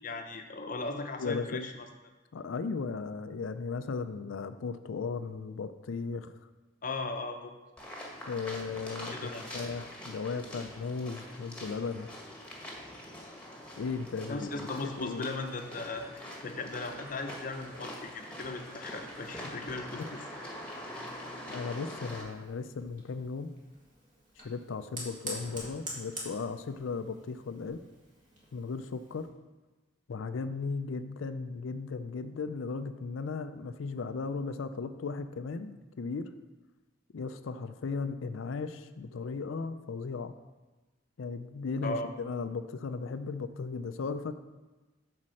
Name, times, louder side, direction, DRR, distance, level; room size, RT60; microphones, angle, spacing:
voice 1, 0.0-1.9 6.8-7.5 9.1-9.5 14.3-20.2 41.8-42.1, left 3 dB, 45° left, 5 dB, 0.7 m, -37 dB
voice 2, 1.2-1.7 2.3-6.3 8.3-12.1 13.8-14.7 15.0-15.3 20.0-20.1 21.5-23.5 24.4-27.8 28.5-29.3 30.1-36.3 37.1-40.3 41.2-44.3, left 4 dB, 85° left, 10 dB, 0.4 m, -36 dB
sound 1, 7.8-22.2, equal, 5° left, 1.4 m, -44 dB
Fire, 22.0-29.3, right 1 dB, 40° right, 2.1 m, -46 dB
8.3 x 4.3 x 6.3 m, 1.2 s
head